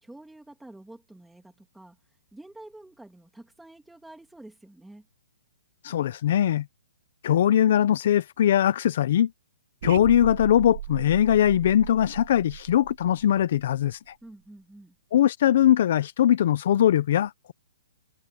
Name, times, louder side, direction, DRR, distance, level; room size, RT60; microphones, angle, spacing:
voice 1, 0.0-5.0 14.2-14.9, right 1 dB, ahead, 2.6 m, -48 dB
voice 2, 5.8-6.7 7.2-9.3 9.8-14.1 15.1-17.5, left 10 dB, 40° left, 0.5 m, -21 dB
sound 1, 9.8-13.9, right 12 dB, 40° right, 2.2 m, -37 dB
hypercardioid pair, 175°, 0 cm